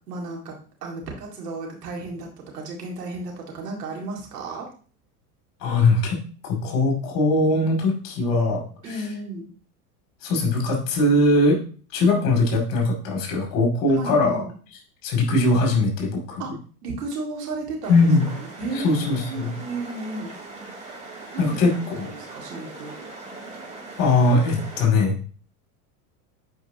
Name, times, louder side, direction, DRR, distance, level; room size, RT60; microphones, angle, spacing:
voice 1, 0.1-0.5 0.8-4.7 8.8-9.5 13.9-14.5 16.4-16.5 16.8-20.3 21.3-21.8 22.1-23.0, right 2 dB, 90° right, -1 dB, 2.2 m, -33 dB
voice 2, 5.6-8.6 10.2-11.6 11.9-14.4 15.0-16.4 17.9-18.3 18.7-19.6 21.4-21.7 22.0-22.1 24.0-25.1, left 2 dB, 45° left, 0 dB, 2.4 m, -20 dB
sound 1, 17.8-24.9, right 3 dB, 15° right, 2.6 m, -40 dB
7.8 x 4.9 x 2.8 m, 0.40 s
hypercardioid pair, 100°, 46 cm